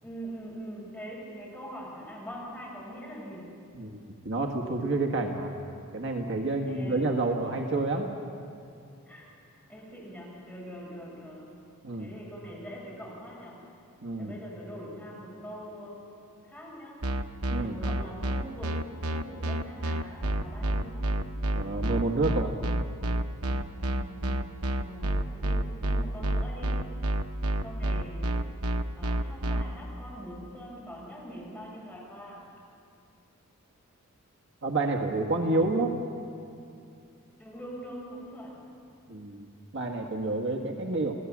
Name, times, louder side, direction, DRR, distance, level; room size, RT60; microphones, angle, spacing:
voice 1, 0.0-3.6 6.7-7.1 9.1-11.6 12.0-13.7 14.2-16.1 16.4-17.1 17.5-21.2 23.7-26.9 27.6-28.4 29.0-32.5 37.4-38.6, equal, 5° left, -5 dB, 7.4 m, -43 dB
voice 2, 4.2-5.5 5.9-8.1 11.8-12.1 14.0-14.3 17.5-17.8 21.5-22.6 34.6-35.9 39.1-39.5 39.7-41.1, right 2 dB, 60° right, 2 dB, 1.7 m, -29 dB
sound 1, 17.0-29.6, right 1 dB, 85° right, 0.9 m, -28 dB
28.5 x 17.0 x 7.4 m, 2.5 s
head